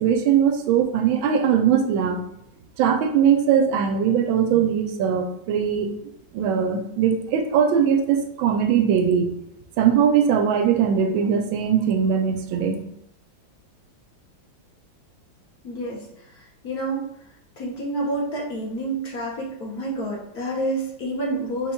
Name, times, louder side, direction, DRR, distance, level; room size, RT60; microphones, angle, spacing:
voice 1, 0.0-2.2 2.8-5.9 6.3-9.3 9.8-12.8, right 8 dB, 85° right, 6 dB, 1.4 m, -20 dB
voice 2, 15.6-16.1 16.3-17.1 17.6-21.7, right 1 dB, 60° left, -2 dB, 1.1 m, -28 dB
4.1 x 2.3 x 4.3 m, 0.78 s
omnidirectional pair, 2.1 m